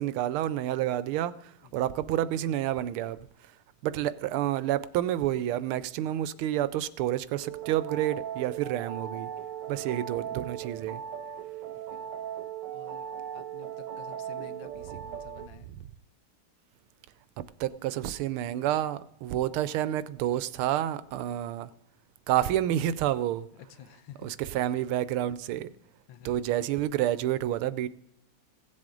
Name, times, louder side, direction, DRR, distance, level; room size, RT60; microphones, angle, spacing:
voice 1, 0.0-3.3 3.8-9.3 9.7-11.0 14.9-15.0 15.6-15.8 17.6-21.7 22.3-23.5 24.2-25.7 26.2-27.9, right 12 dB, 85° right, 1.5 m, -29 dB
sound 1, 7.4-15.5, right 9 dB, 70° right, 1.1 m, -38 dB
voice 2, 9.7-10.1 11.9-12.1 12.7-13.1 13.3-15.7 23.6-24.6 26.1-26.3, left 9 dB, 70° left, 1.4 m, -51 dB
17.0 x 7.6 x 3.8 m
omnidirectional pair, 2.3 m